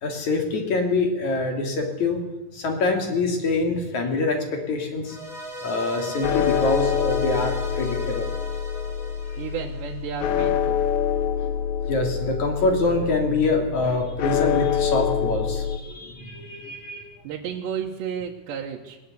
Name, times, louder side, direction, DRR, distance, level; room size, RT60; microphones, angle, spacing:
voice 1, 0.0-2.2 2.5-5.2 5.6-8.3 9.3-9.5 11.3-11.5 11.8-17.1, left 3 dB, 45° left, 3 dB, 4.0 m, -25 dB
sound 1, 5.0-10.3, equal, ahead, 4.5 m, -37 dB
sound 2, 6.2-15.8, left 8 dB, 85° left, 1.7 m, -26 dB
voice 2, 9.4-10.9 17.2-19.0, right 8 dB, 80° right, -2 dB, 3.6 m, -32 dB
20.0 x 19.0 x 8.3 m, 1.0 s
omnidirectional pair, 5.0 m